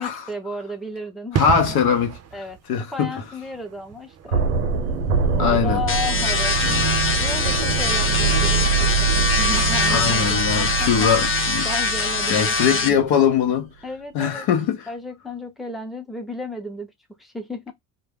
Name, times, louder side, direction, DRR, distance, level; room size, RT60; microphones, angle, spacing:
voice 1, 0.0-1.5 2.3-4.5 5.3-6.6 7.2-11.1 11.6-13.0 13.8-14.5 14.9-16.9 17.2-17.7, left 2 dB, ahead, 0.7 m, -33 dB
voice 2, 1.3-2.2 2.7-3.1 5.4-5.8 6.6-6.8 9.9-11.7 12.3-13.7 14.1-14.8, left 7 dB, 65° left, 0.8 m, -21 dB
sound 1, 1.3-7.8 8.1-8.3, right 8 dB, 40° right, 0.5 m, -33 dB
sound 2, 4.3-13.2, right 6 dB, 90° right, 0.7 m, -24 dB
sound 3, 5.9-12.9, left 4 dB, 30° left, 0.9 m, -23 dB
2.2 x 2.0 x 3.4 m
hypercardioid pair, 60°, 41 cm